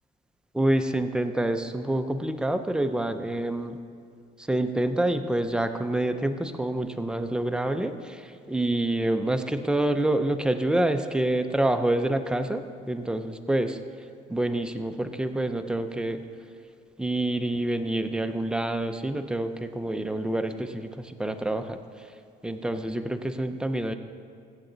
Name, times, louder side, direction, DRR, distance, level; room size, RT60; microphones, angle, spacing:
voice 1, 0.5-3.8 4.5-13.8 14.3-16.2 17.0-21.8 22.4-24.0, right 1 dB, 5° right, 7 dB, 0.6 m, -27 dB
15.0 x 7.9 x 4.0 m, 2.4 s
cardioid pair, 110°, 17 cm